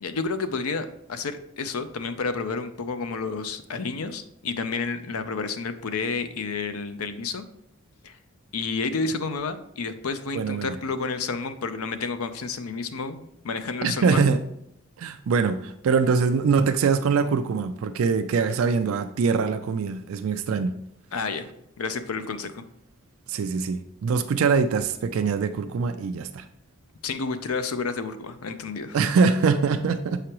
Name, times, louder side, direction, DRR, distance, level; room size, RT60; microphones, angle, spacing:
voice 1, 0.0-7.4 8.0-8.2 8.5-14.2 21.1-21.5 21.8-22.6 27.0-29.0, left 4 dB, 90° left, 10 dB, 0.5 m, -30 dB
voice 2, 10.3-10.8 13.8-14.4 15.0-20.7 23.3-26.4 28.9-30.2, right 5 dB, 75° right, 8 dB, 0.3 m, -23 dB
6.7 x 4.9 x 3.0 m, 0.78 s
head